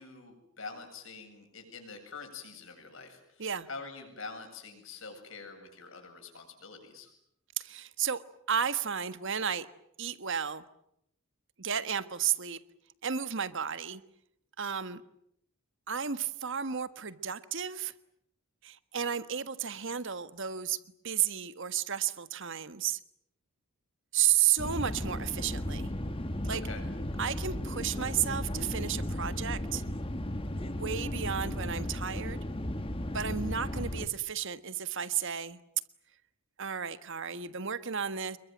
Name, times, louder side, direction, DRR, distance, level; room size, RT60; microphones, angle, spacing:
voice 1, 0.0-7.1 26.5-26.8, left 4 dB, 60° left, 4 dB, 7.8 m, -45 dB
voice 2, 7.6-9.7 10.0-10.6 11.6-12.6 13.0-14.0 14.6-15.0 15.9-17.9 18.6-20.8 21.0-23.0 24.1-25.9 26.4-26.6 27.2-29.8 30.5-32.4 33.1-35.6 36.6-38.4, right 8 dB, 55° right, 13 dB, 1.4 m, -32 dB
sound 1, 24.6-34.1, left 1 dB, 25° left, 1.5 m, -35 dB
28.5 x 22.5 x 9.2 m, 0.76 s
head